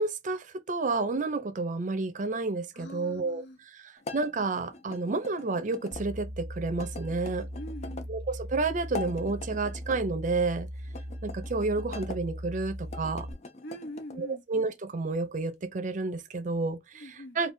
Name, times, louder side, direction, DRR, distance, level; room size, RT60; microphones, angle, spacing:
voice 1, 0.0-3.4 3.7-7.5 8.1-10.7 11.2-13.3 14.2-17.5, right 3 dB, 45° right, 0.5 m, -30 dB
voice 2, 2.7-3.6 7.5-8.1 13.6-14.4 16.9-17.4, equal, 75° left, 0.7 m, -43 dB
sound 1, 4.0-6.0 6.8-8.1 8.8-10.0 10.9-12.2 12.8-14.2, left 3 dB, 40° left, 0.5 m, -43 dB
sound 2, 5.9-13.3, equal, 5° right, 0.7 m, -39 dB
2.6 x 2.3 x 3.4 m
head